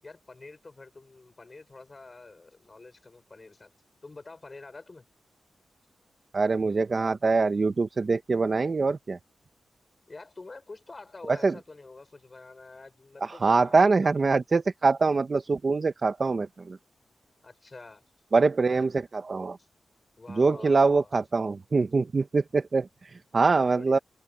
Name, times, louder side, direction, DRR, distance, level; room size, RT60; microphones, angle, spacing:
voice 1, 0.0-3.7 4.0-5.0 10.1-14.4 17.4-18.0 19.6-19.7 20.2-21.1 23.4-24.0, left 3 dB, 30° left, 6.4 m, -47 dB
voice 2, 6.3-9.2 11.3-11.5 13.2-16.8 18.3-19.6 20.4-24.0, right 4 dB, 40° right, 1.2 m, -24 dB
open air
wide cardioid pair, 105°, 0 cm